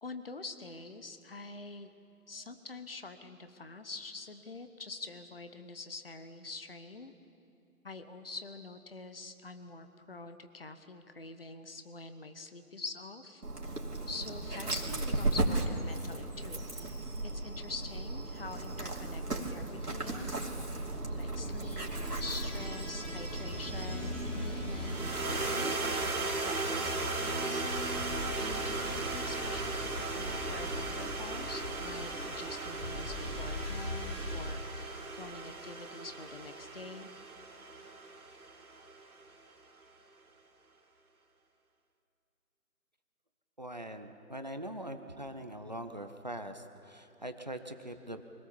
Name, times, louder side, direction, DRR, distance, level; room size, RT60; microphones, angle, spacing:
voice 1, 0.0-1.9 2.3-7.1 7.8-13.8 14.1-16.7 17.2-20.5 21.1-25.1 25.5-27.6 28.4-37.1, left 3 dB, 40° left, 9 dB, 1.1 m, -45 dB
Dog, 13.4-25.5, right 2 dB, 85° right, 2.8 m, -36 dB
sound 1, 21.8-34.4, left 1 dB, 10° left, 4.4 m, -41 dB
sound 2, 24.8-39.2, right 3 dB, 70° right, 2.3 m, -37 dB
voice 2, 43.6-48.2, right 1 dB, 30° right, 7 dB, 0.8 m, -42 dB
24.0 x 17.5 x 7.1 m, 2.6 s
figure-of-eight pair, 165°, 46 cm